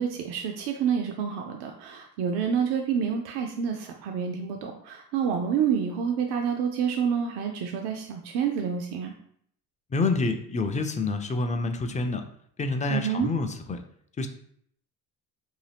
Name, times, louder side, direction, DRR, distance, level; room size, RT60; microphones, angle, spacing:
voice 1, 0.0-9.1 12.9-13.3, right 7 dB, 75° right, 2 dB, 0.5 m, -28 dB
voice 2, 9.9-12.2 12.6-13.8 14.2-14.3, left 3 dB, 20° left, 6 dB, 0.3 m, -27 dB
2.8 x 2.2 x 3.3 m, 0.67 s
supercardioid pair, 70°, 41 cm